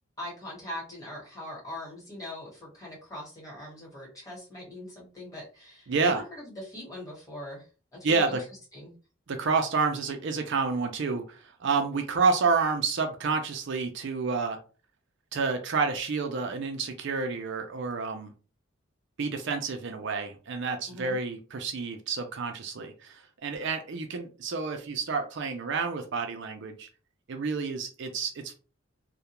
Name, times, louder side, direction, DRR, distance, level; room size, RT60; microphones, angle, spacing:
voice 1, 0.2-7.7 7.9-8.4 8.7-8.9 20.9-21.2, left 1 dB, 15° left, -3 dB, 1.2 m, -41 dB
voice 2, 5.9-6.2 8.0-8.4 9.3-14.6 15.3-18.3 19.2-26.9 27.3-28.5, right 4 dB, 55° right, 5 dB, 0.4 m, -29 dB
2.3 x 2.1 x 2.9 m, 0.36 s
head